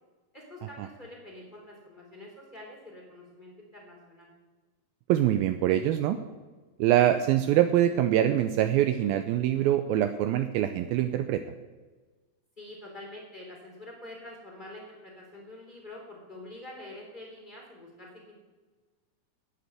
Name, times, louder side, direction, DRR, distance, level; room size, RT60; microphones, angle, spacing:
voice 1, 0.3-4.3 12.6-18.4, left 1 dB, 15° left, -2 dB, 2.8 m, -46 dB
voice 2, 5.1-6.2 6.8-11.4, right 12 dB, 90° right, 9 dB, 2.1 m, -24 dB
10.0 x 8.4 x 7.8 m, 1.3 s
omnidirectional pair, 4.9 m